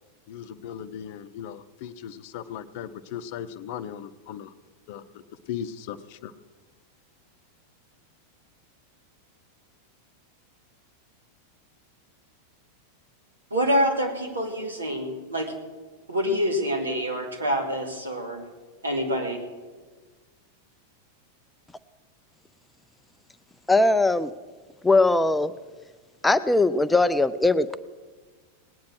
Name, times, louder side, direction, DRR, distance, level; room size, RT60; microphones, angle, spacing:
voice 1, 0.3-4.5 4.9-5.0 5.5-6.3, left 9 dB, 50° left, 13 dB, 0.7 m, -37 dB
voice 2, 13.5-15.5 16.1-18.4 18.8-19.4, equal, 75° right, 1 dB, 2.6 m, -26 dB
voice 3, 23.7-24.3 24.8-25.5 26.2-27.8, left 2 dB, 5° left, 12 dB, 0.4 m, -20 dB
19.0 x 9.4 x 6.3 m, 1.4 s
figure-of-eight pair, 90°, 0 cm